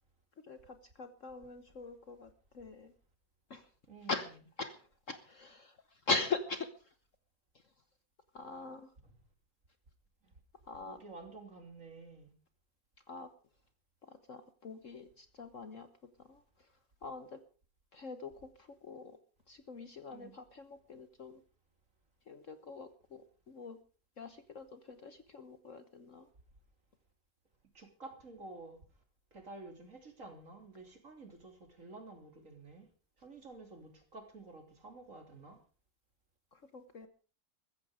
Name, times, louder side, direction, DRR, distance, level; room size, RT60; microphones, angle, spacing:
voice 1, 0.4-2.9 3.5-3.7 4.1-6.9 7.5-7.6 8.3-8.9 10.6-11.0 13.1-13.3 14.0-15.9 16.2-16.7 17.0-17.4 17.9-19.2 19.5-21.4 22.3-23.8 24.2-26.3 36.5-37.1, left 3 dB, 50° left, 10 dB, 1.3 m, -42 dB
voice 2, 10.8-12.3 20.1-20.4 27.7-28.8 29.3-32.9 33.2-35.6, right 3 dB, 45° right, 5 dB, 3.4 m, -51 dB
15.0 x 14.5 x 5.0 m, 0.38 s
omnidirectional pair, 2.0 m